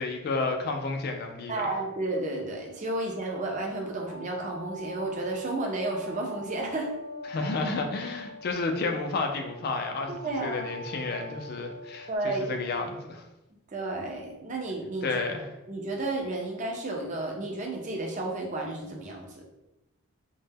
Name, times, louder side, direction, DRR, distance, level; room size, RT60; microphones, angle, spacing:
voice 1, 0.0-1.7 7.3-13.2 15.0-15.5, left 3 dB, 45° left, 4 dB, 0.3 m, -31 dB
voice 2, 1.5-6.9 10.1-10.7 12.1-12.6 13.7-15.2 15.7-19.4, right 2 dB, 35° right, 1 dB, 0.4 m, -32 dB
sound 1, 4.0-12.2, equal, 65° right, 0.7 m, -44 dB
2.1 x 2.0 x 3.3 m, 0.94 s
head